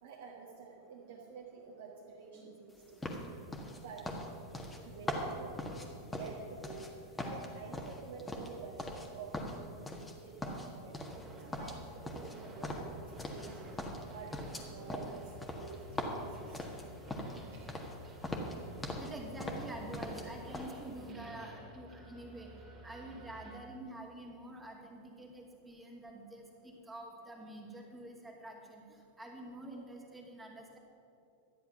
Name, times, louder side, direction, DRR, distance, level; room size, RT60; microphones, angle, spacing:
voice 1, 0.0-3.2 3.8-4.1 4.8-5.7 6.0-6.9 7.2-9.7 10.0-11.0 11.4-13.8 14.1-16.6 17.4-17.7, right 5 dB, 55° right, -2 dB, 1.6 m, -49 dB
sound 1, 3.0-6.9 7.2-9.1 9.3-10.1 10.4-11.3 11.5-13.5 13.8-17.4 17.7-18.0 18.2-19.1 19.4-20.3 20.5-20.7, left 1 dB, 10° left, 1.6 m, -40 dB
voice 2, 4.5-5.0 17.6-17.7 19.0-22.5 22.8-28.8 29.2-30.8, right 1 dB, 10° right, -1 dB, 2.4 m, -47 dB
sound 2, 10.9-23.6, equal, 25° right, 2.4 m, -52 dB
13.5 x 10.0 x 5.9 m, 2.8 s
figure-of-eight pair, 90°, 0 cm